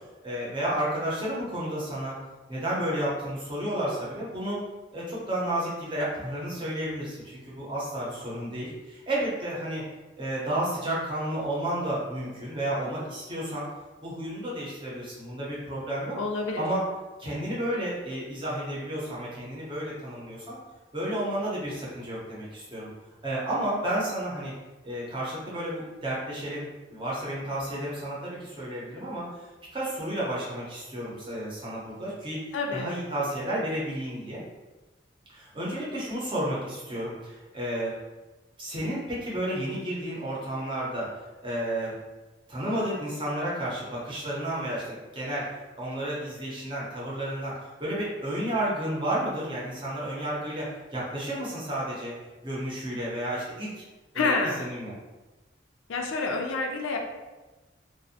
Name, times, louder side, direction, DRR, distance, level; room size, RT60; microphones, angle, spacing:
voice 1, 0.2-2.1 2.5-4.6 4.9-9.8 10.2-13.6 14.0-16.2 16.6-16.8 17.2-20.6 20.9-22.9 23.2-24.5 24.8-32.4 32.7-34.4 35.3-37.9 38.6-41.1 41.4-41.9 42.5-45.5 45.8-50.7 50.9-52.1 52.4-53.8 54.1-54.9, right 1 dB, 25° right, -6 dB, 0.7 m, -31 dB
voice 2, 16.2-16.6 32.5-32.9 54.1-54.7 55.9-57.0, left 3 dB, 85° left, 1 dB, 0.4 m, -28 dB
2.5 x 2.0 x 2.7 m, 1.2 s
head